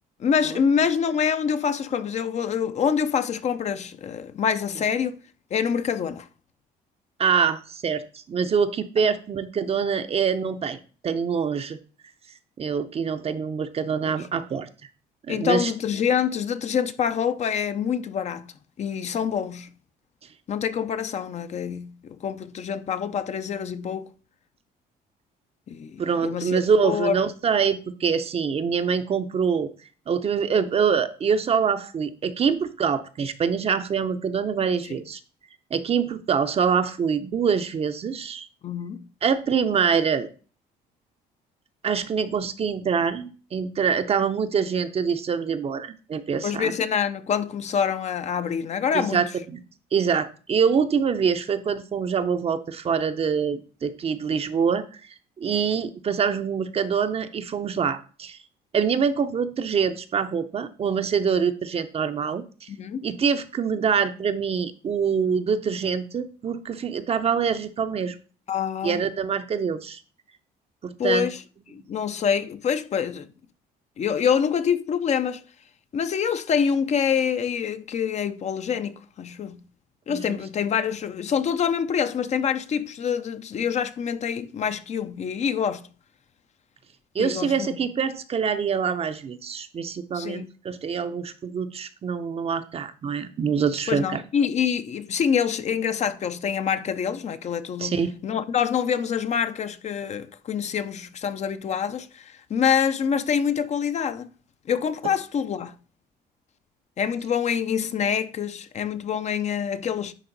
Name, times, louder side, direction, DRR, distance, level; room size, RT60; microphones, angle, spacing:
voice 1, 0.2-5.2 5.5-6.3 14.0-14.1 15.3-18.5 18.8-19.7 20.5-24.1 25.7-27.2 34.9-35.0 38.6-39.1 46.4-49.2 62.7-63.1 68.5-69.0 71.0-71.4 71.7-73.3 74.0-75.5 75.9-79.6 80.1-85.9 87.2-87.8 90.1-90.5 93.9-104.3 104.7-105.7 107.0-110.1, left 7 dB, 40° left, 0.6 m, -26 dB
voice 2, 7.2-11.8 12.6-14.7 15.2-15.7 26.0-29.7 30.1-35.2 35.7-38.5 39.2-40.3 41.8-46.7 48.9-49.6 49.9-55.0 55.4-58.4 58.7-62.7 63.0-68.2 68.8-70.0 70.8-71.3 80.1-80.4 87.1-94.2 97.8-98.1, right 6 dB, 35° right, 0.6 m, -25 dB
10.0 x 3.6 x 4.0 m
cardioid pair, 110°, 17 cm